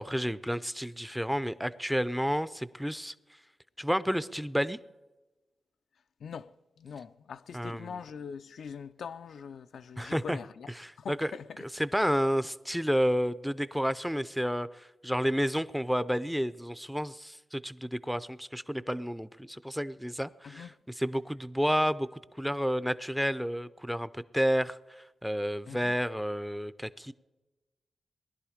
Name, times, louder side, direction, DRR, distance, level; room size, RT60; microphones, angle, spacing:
voice 1, 0.0-3.1 3.8-4.8 7.5-8.0 10.0-10.4 10.8-11.3 11.7-20.7 21.0-27.1, equal, ahead, 0.5 m, -30 dB
voice 2, 6.2-10.7 11.0-11.6 20.4-20.8 25.7-26.0, left 7 dB, 90° left, 0.4 m, -43 dB
20.0 x 11.5 x 5.0 m
wide cardioid pair, 115°, 0 cm